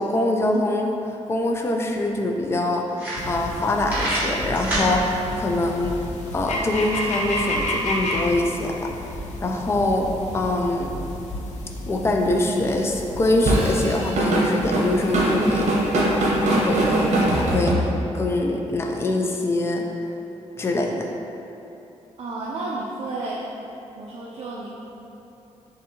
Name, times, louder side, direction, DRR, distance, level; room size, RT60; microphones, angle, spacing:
voice 1, 0.0-5.9 6.3-8.9 9.4-10.1 10.3-10.9 11.9-15.7 16.1-16.2 16.6-19.8 20.6-21.1, left 2 dB, 20° left, 1 dB, 0.3 m, -24 dB
sound 1, 1.5-1.6 1.9-2.0 2.5-2.6 2.9-3.6 3.9-4.9, right 1 dB, 15° right, 1.1 m, -27 dB
sound 2, 3.2-17.6, left 1 dB, 80° left, 0.5 m, -32 dB
Drum kit / Drum, 13.5-18.3, right 1 dB, 80° right, 0.8 m, -21 dB
voice 2, 22.2-23.4 24.0-24.7, right 2 dB, 60° right, -5 dB, 0.4 m, -31 dB
6.3 x 2.6 x 2.8 m, 2.9 s
wide cardioid pair, 165°, 12 cm